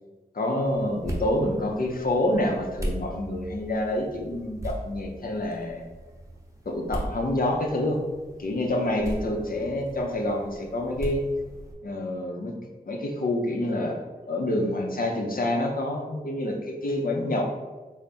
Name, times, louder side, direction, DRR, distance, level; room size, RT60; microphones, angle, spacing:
voice 1, 0.3-5.9 6.7-8.0 8.4-11.2 11.8-12.5 12.9-14.0 14.3-17.4, left 1 dB, 60° left, 1 dB, 0.6 m, -27 dB
sound 1, 0.6-11.7, right 1 dB, 20° right, 0.9 m, -38 dB
3.4 x 2.1 x 4.1 m, 1.3 s
cardioid pair, 40°, 17 cm